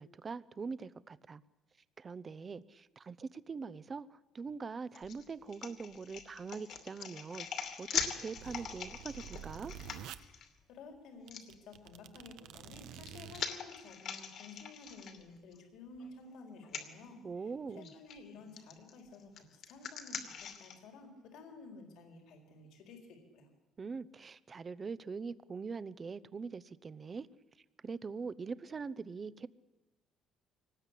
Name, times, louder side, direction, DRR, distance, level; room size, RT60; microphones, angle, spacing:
voice 1, 0.0-1.4 2.0-9.7 17.2-17.9 23.8-27.3 27.8-29.5, right 5 dB, 25° right, 17 dB, 0.8 m, -43 dB
sound 1, 4.9-10.5 11.3-11.4 12.6-15.6 16.0-16.1 16.6-16.9 17.8-18.1 18.6-20.8, left 7 dB, 55° left, 2.6 m, -42 dB
sound 2, 8.0-10.2 10.9-11.0 11.3-13.5, right 10 dB, 75° right, 1.1 m, -49 dB
voice 2, 10.7-17.2 17.8-23.5, left 3 dB, 70° left, 3 dB, 4.3 m, -53 dB
24.5 x 19.0 x 8.4 m, 1.1 s
cardioid pair, 140°, 0 cm